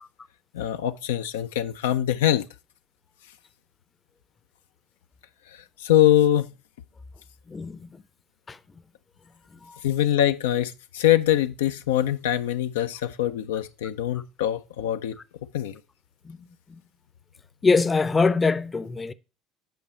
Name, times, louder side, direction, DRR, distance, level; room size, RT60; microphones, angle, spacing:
voice 1, 0.5-2.4 5.5-6.5 9.8-15.1 15.5-15.8, left 12 dB, 85° left, 0.3 m, -23 dB
voice 2, 17.6-19.1, left 4 dB, 25° left, 0.5 m, -22 dB
7.6 x 5.0 x 4.2 m
hypercardioid pair, 70°, 0 cm